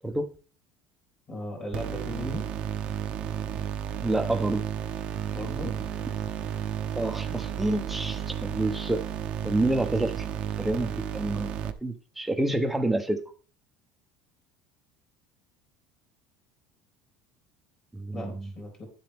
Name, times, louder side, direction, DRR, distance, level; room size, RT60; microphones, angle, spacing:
voice 1, 1.3-2.4 5.3-5.8 18.1-18.9, left 1 dB, 30° left, 0 dB, 3.6 m, -37 dB
sound 1, 1.7-11.7, right 9 dB, 40° right, 0.8 m, -32 dB
voice 2, 4.0-4.6 6.9-9.0 9.4-10.3 10.6-11.5 11.8-13.2 17.9-18.5, right 1 dB, 5° right, 6 dB, 0.9 m, -28 dB
10.5 x 7.5 x 3.5 m, 0.40 s
cardioid pair, 150°, 3 cm